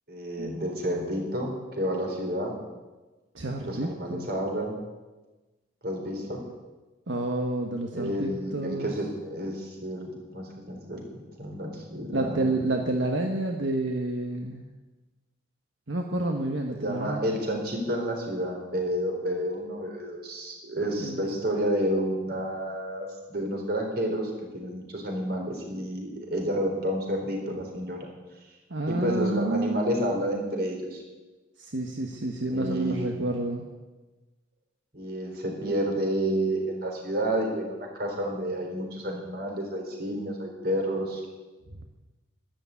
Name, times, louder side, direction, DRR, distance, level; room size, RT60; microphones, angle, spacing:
voice 1, 0.1-2.5 3.6-4.8 5.8-6.4 7.9-11.0 11.4-12.5 16.7-28.0 28.9-31.0 32.5-33.2 34.9-41.2, equal, 55° right, 1 dB, 4.1 m, -30 dB
voice 2, 3.3-4.3 7.1-8.9 12.1-14.7 15.9-17.2 21.0-21.2 28.7-29.8 31.6-33.6, right 2 dB, 80° right, 3 dB, 1.3 m, -29 dB
13.0 x 12.0 x 8.5 m, 1.2 s
head